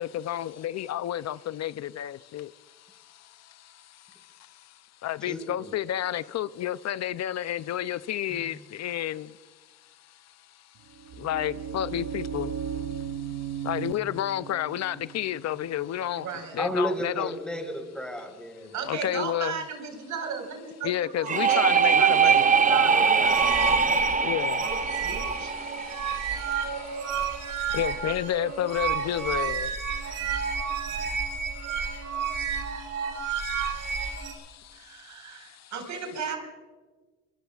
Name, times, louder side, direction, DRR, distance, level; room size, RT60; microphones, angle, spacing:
voice 1, 0.0-17.4 18.9-19.6 20.8-22.5 23.7-35.7 36.2-36.3, left 12 dB, 60° left, 0.5 m, -33 dB
voice 2, 5.3-5.7 8.3-8.4 16.6-18.7, equal, 5° left, 4.4 m, -32 dB
sound 1, 10.8-16.7, right 9 dB, 55° right, 1.3 m, -37 dB
voice 3, 16.2-16.5 18.7-23.3 24.6-25.5 34.7-36.4, right 6 dB, 70° right, 4.7 m, -35 dB
sound 2, 21.3-26.9, right 6 dB, 25° right, 0.7 m, -23 dB
sound 3, 23.2-34.3, right 6 dB, 90° right, 3.7 m, -31 dB
24.5 x 22.5 x 2.4 m
cardioid pair, 90°, 30 cm